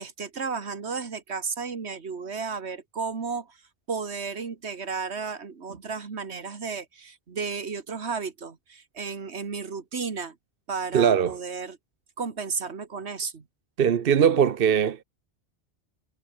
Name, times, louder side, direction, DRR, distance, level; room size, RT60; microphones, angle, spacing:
voice 1, 0.0-3.6 3.9-10.4 10.7-11.8 12.2-13.4, right 5 dB, 75° right, 2.0 m, -33 dB
voice 2, 10.9-11.4 13.8-15.0, right 8 dB, 60° right, 1.0 m, -20 dB
omnidirectional pair, 1.1 m